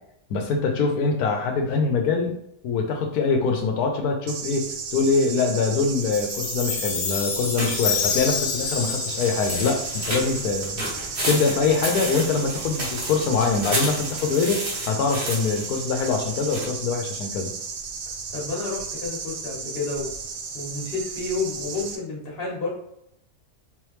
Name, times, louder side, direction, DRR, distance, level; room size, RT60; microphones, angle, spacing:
voice 1, 0.3-2.3 2.6-10.8 11.3-17.5, left 4 dB, 85° left, 3 dB, 1.1 m, -24 dB
sound 1, 4.3-22.0, right 5 dB, 75° right, 1.0 m, -34 dB
Chime, 6.1-10.6, left 7 dB, 70° left, 0.5 m, -29 dB
sound 2, 7.6-16.6, right 1 dB, 40° right, 1.4 m, -32 dB
voice 2, 18.3-20.1 20.5-22.7, left 3 dB, 40° left, -3 dB, 1.4 m, -30 dB
3.8 x 3.2 x 3.1 m, 0.77 s
omnidirectional pair, 1.6 m